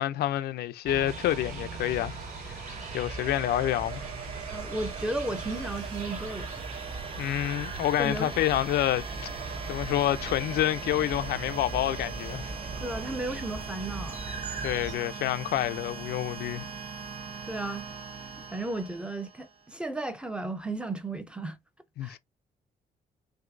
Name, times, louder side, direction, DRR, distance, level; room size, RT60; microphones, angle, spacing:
voice 1, 0.0-2.6 2.9-4.1 7.2-12.5 14.6-16.7 22.0-22.2, left 13 dB, 85° left, 0.5 m, -28 dB
sound 1, 0.8-15.0, right 3 dB, 50° right, 2.6 m, -39 dB
sound 2, 1.1-6.0, right 9 dB, 85° right, 1.0 m, -49 dB
sound 3, 2.1-19.7, right 5 dB, 35° right, 0.9 m, -42 dB
voice 2, 4.5-6.5 8.0-8.3 12.8-14.2 15.0-15.1 17.5-17.8 18.4-21.6 22.0-22.2, right 2 dB, 5° right, 0.6 m, -34 dB
6.0 x 2.7 x 2.6 m
cardioid pair, 175°, 16 cm